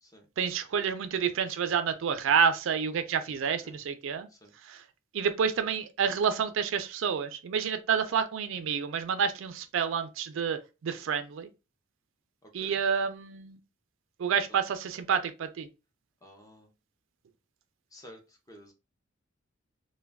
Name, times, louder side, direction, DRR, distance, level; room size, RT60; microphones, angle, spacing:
voice 1, 0.4-4.3 4.6-4.8 5.1-11.5 12.5-13.6 14.2-15.7, right 7 dB, 65° right, 0.3 m, -29 dB
voice 2, 3.4-3.8 4.3-4.5 12.4-12.8 16.2-16.7 17.9-18.7, equal, 15° left, 0.5 m, -52 dB
2.3 x 2.2 x 3.3 m
head